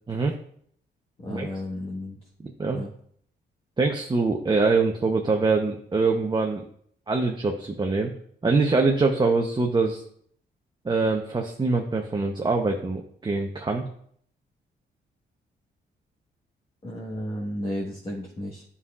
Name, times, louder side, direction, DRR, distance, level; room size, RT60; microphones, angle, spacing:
voice 1, 1.2-2.2 2.7-2.9 16.8-18.6, left 1 dB, 30° left, -2 dB, 1.5 m, -33 dB
voice 2, 3.8-6.6 7.1-8.1 8.4-10.0 10.8-13.8, right 3 dB, 25° right, 2 dB, 0.8 m, -24 dB
9.4 x 5.6 x 2.4 m, 0.64 s
cardioid pair, 70°, 19 cm